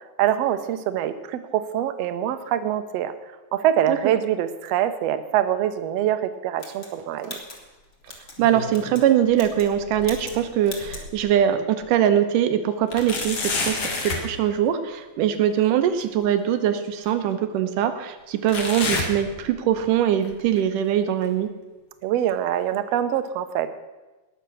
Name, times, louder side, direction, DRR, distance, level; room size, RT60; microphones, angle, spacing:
voice 1, 0.2-3.1 3.5-7.4 22.0-23.7, right 11 dB, 70° right, 10 dB, 1.6 m, -24 dB
sound 1, 6.6-8.4 8.7-9.1 9.3-9.7 10.0-10.4 10.6-11.1, left 2 dB, 25° left, 1.8 m, -40 dB
sound 2, 8.1-9.1 9.4-11.3 11.8-11.9 12.9-14.3 16.0-16.1 17.0-17.1 18.5-19.9 20.2-20.6 21.2-21.3 22.2-22.3, left 3 dB, 50° left, 2.6 m, -30 dB
voice 2, 8.4-21.5, right 10 dB, 90° right, 9 dB, 2.5 m, -22 dB
19.5 x 6.9 x 6.3 m, 1.2 s
omnidirectional pair, 3.7 m